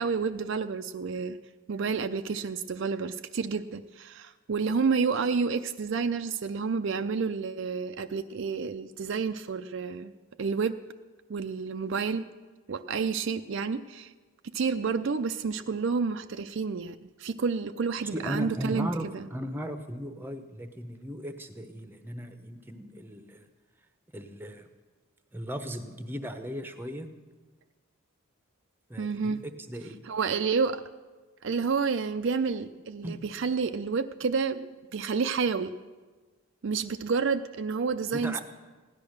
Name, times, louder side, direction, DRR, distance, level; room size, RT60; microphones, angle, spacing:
voice 1, 0.0-1.4 1.7-10.1 10.4-10.7 11.3-12.2 12.7-14.1 14.5-18.9 19.1-19.2 29.0-29.4 30.1-30.8 31.4-35.7 36.6-38.4, right 5 dB, 55° right, 9 dB, 0.4 m, -29 dB
voice 2, 18.1-23.4 24.1-24.7 25.3-27.1 28.9-30.0 33.0-33.2 38.1-38.4, equal, 10° right, 8 dB, 0.8 m, -37 dB
16.0 x 10.5 x 6.4 m, 1.3 s
head